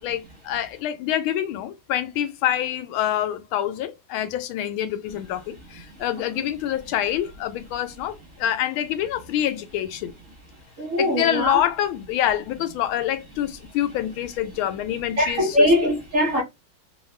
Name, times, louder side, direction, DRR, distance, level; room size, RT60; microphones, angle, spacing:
voice 1, 0.0-10.1 11.0-15.7, left 11 dB, 80° left, 1.4 m, -26 dB
voice 2, 10.8-11.6 15.2-16.4, left 1 dB, 50° right, 1.0 m, -21 dB
3.4 x 2.3 x 3.1 m
omnidirectional pair, 2.3 m